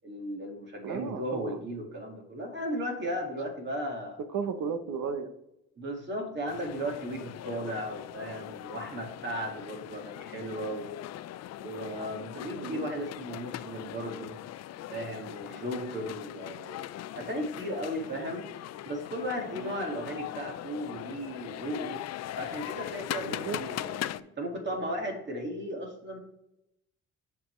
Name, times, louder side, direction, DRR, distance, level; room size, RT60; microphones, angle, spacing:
voice 1, 0.0-4.2 5.8-10.9 11.6-14.4 14.9-16.8 17.1-18.5 18.8-22.0 22.4-26.2, equal, 35° right, 1 dB, 2.1 m, -36 dB
voice 2, 0.8-1.6 4.2-5.3 12.6-12.9 15.7-15.9 19.5-19.7 23.2-23.6, right 6 dB, 70° right, 9 dB, 1.0 m, -35 dB
sound 1, 6.5-24.2, left 13 dB, 60° left, 0.4 m, -40 dB
8.7 x 5.9 x 3.2 m, 0.84 s
cardioid pair, 90°, 30 cm